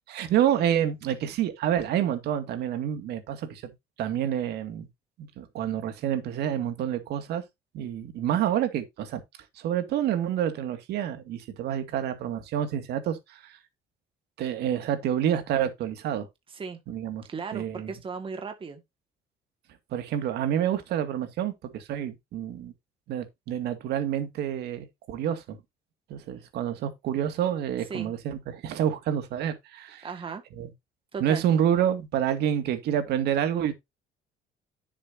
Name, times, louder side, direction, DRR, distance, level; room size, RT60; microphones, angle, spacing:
voice 1, 0.1-3.7 4.0-4.9 5.2-7.4 7.7-9.2 9.6-13.6 14.4-16.3 16.9-17.3 17.5-17.9 19.9-22.7 23.1-25.6 26.1-30.1 30.6-30.7 31.2-33.7, right 10 dB, 75° right, 2.3 m, -28 dB
voice 2, 17.3-18.8 26.3-26.4 27.9-28.1 30.0-30.4 31.1-31.4, right 5 dB, 30° right, 2.0 m, -36 dB
10.0 x 7.4 x 2.8 m
cardioid pair, 110°, 17 cm